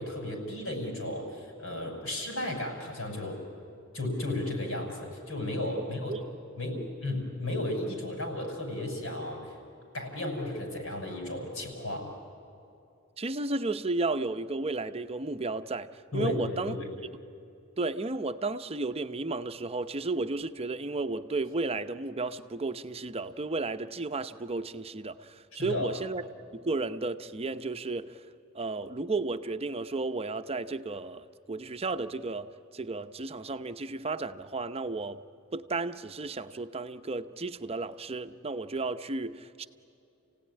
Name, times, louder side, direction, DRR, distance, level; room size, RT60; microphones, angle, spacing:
voice 1, 0.0-3.4 3.9-6.2 6.6-9.6 9.9-12.1 16.1-16.9 25.6-25.9, left 1 dB, 75° left, 6.3 m, -34 dB
voice 2, 5.7-6.2 6.7-6.9 13.2-15.9 16.1-16.8 17.8-26.2 26.5-28.2 28.5-35.2 35.5-39.7, right 3 dB, 30° right, 0.8 m, -33 dB
29.5 x 17.0 x 9.9 m
head